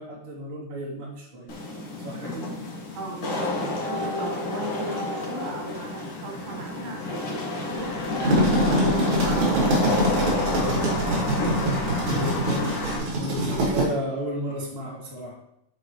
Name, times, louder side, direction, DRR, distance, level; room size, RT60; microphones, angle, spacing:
voice 1, 0.0-1.5 2.0-2.6 12.1-12.7 13.2-15.4, equal, 20° right, -6 dB, 2.3 m, -33 dB
Wind / Rain, 1.5-13.0, left 2 dB, 50° left, 1.8 m, -29 dB
voice 2, 3.0-9.9, right 4 dB, 80° right, 0 dB, 3.0 m, -38 dB
sound 1, 8.0-13.8, right 1 dB, 60° right, 3.2 m, -24 dB
9.3 x 5.9 x 3.1 m, 0.77 s
omnidirectional pair, 4.0 m